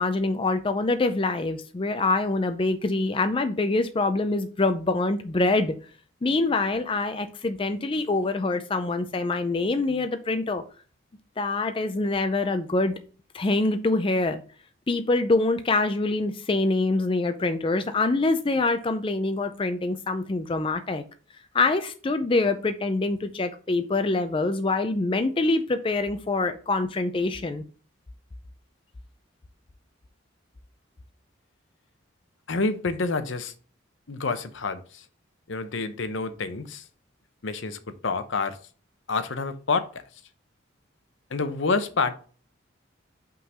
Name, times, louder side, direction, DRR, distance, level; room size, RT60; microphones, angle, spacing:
voice 1, 0.0-5.7 6.2-10.6 11.4-13.0 13.3-14.4 14.9-21.0 21.5-27.6, left 2 dB, 25° left, 0.4 m, -25 dB
voice 2, 32.5-33.5 34.1-35.0 35.5-36.8 37.4-38.6 39.1-40.0 41.3-42.1, left 4 dB, 65° left, 0.7 m, -28 dB
5.6 x 3.8 x 5.4 m
head